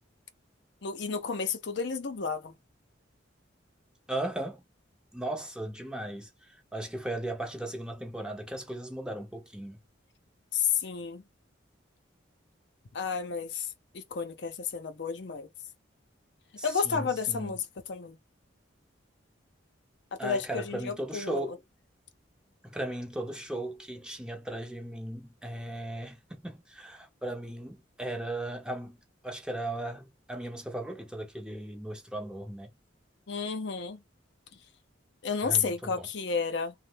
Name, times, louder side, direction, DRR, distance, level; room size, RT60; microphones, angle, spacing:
voice 1, 0.8-2.5 10.5-11.2 12.9-13.7 13.9-15.5 16.6-18.2 20.2-21.5 33.3-34.0 35.2-36.7, left 6 dB, 60° left, 0.6 m, -31 dB
voice 2, 4.1-4.6 5.1-6.3 6.7-9.8 16.6-17.5 20.2-21.6 22.6-29.0 29.2-32.7 35.4-36.1, right 1 dB, 5° right, 0.6 m, -37 dB
3.1 x 2.1 x 3.2 m
head